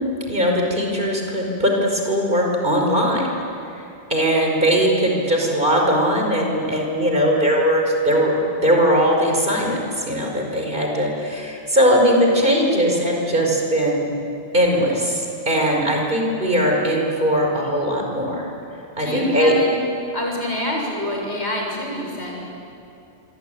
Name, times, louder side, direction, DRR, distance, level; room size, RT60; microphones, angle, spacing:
voice 1, 0.3-3.2 4.1-14.1 14.5-18.5 19.0-19.5, equal, 50° right, 0 dB, 5.4 m, -20 dB
voice 2, 19.0-19.8 20.1-22.5, left 1 dB, 80° left, -1 dB, 7.1 m, -26 dB
25.5 x 25.0 x 9.3 m, 2.7 s
omnidirectional pair, 1.1 m